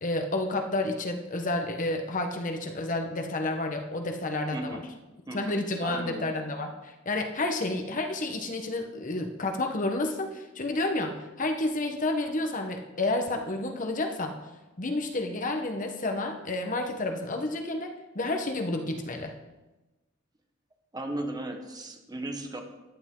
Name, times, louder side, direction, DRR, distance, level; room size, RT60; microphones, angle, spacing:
voice 1, 0.0-4.8 5.3-14.3 14.8-19.3, left 2 dB, 40° left, 4 dB, 1.2 m, -30 dB
voice 2, 4.5-4.8 5.3-6.3 20.9-22.6, right 1 dB, 20° right, 3 dB, 1.3 m, -36 dB
14.5 x 10.5 x 3.8 m, 1.1 s
head